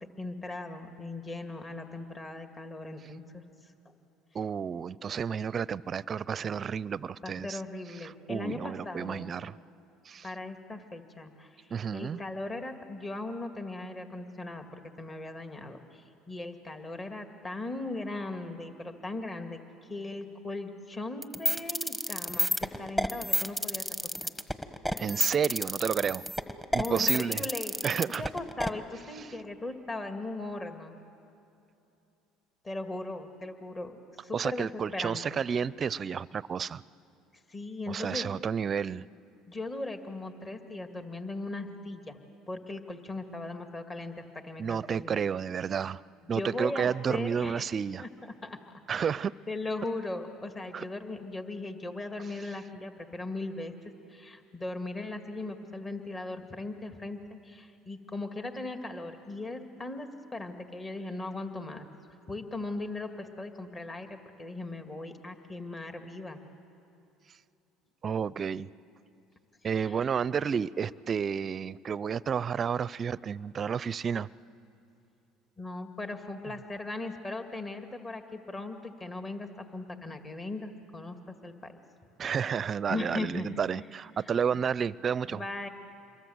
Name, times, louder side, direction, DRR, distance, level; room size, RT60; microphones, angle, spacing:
voice 1, 0.0-3.4 3.9-4.0 7.2-9.3 10.2-19.6 19.9-23.9 26.8-27.7 28.2-31.0 32.6-35.4 37.3-38.3 39.5-42.2 42.5-45.2 46.3-47.7 48.0-48.1 48.4-48.6 48.9-49.2 49.5-53.7 54.1-61.9 62.3-66.4 69.8-70.0 75.6-81.7 82.9-83.6 84.5-84.6 85.3-85.7, left 2 dB, 25° left, 6 dB, 2.0 m, -38 dB
voice 2, 4.3-7.6 8.0-9.6 10.1-10.3 11.7-12.2 25.0-26.2 26.7-27.4 27.8-28.2 34.3-36.8 37.9-39.0 44.6-46.0 46.3-48.0 48.9-49.3 50.7-50.8 68.0-68.7 69.6-74.3 82.2-85.4, right 7 dB, 40° right, 21 dB, 0.5 m, -31 dB
sound 1, 21.2-28.7, equal, 10° left, 1.4 m, -29 dB
27.0 x 23.0 x 7.9 m, 2.8 s
supercardioid pair, 80°, 0 cm